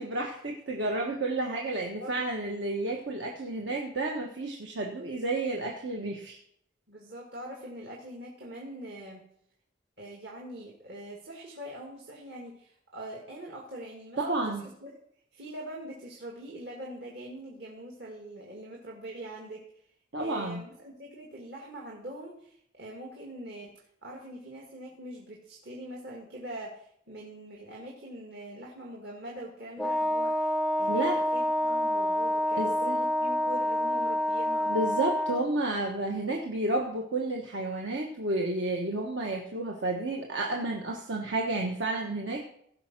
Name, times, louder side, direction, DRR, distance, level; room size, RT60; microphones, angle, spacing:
voice 1, 0.0-6.4 14.2-14.6 20.1-20.6 30.9-31.2 32.6-33.0 34.7-42.4, right 2 dB, 80° right, 0 dB, 1.4 m, -31 dB
voice 2, 6.9-9.2 10.0-15.0 15.3-19.6 20.2-23.7 24.0-34.8, right 1 dB, 65° right, -2 dB, 2.1 m, -43 dB
Wind instrument woodwind instrument, 29.8-35.5, left 1 dB, ahead, 0.3 m, -28 dB
16.0 x 5.6 x 6.0 m, 0.69 s
head